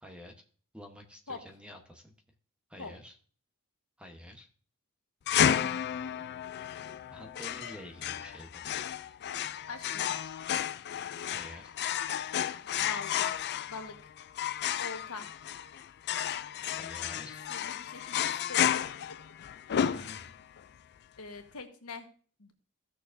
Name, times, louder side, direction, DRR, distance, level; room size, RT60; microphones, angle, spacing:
voice 1, 0.0-0.3 0.7-2.1 2.7-3.1 4.0-4.5 7.1-8.7 11.3-11.7 16.8-17.4 19.7-20.3, equal, 5° right, 3 dB, 1.1 m, -48 dB
sound 1, 5.3-20.6, left 9 dB, 50° left, 0.4 m, -32 dB
voice 2, 9.7-10.1 12.8-13.4 13.7-14.1 14.8-15.3 17.5-18.9 21.2-22.1 22.4-22.5, left 4 dB, 75° left, 5 dB, 1.4 m, -43 dB
16.0 x 6.5 x 2.6 m, 0.42 s
head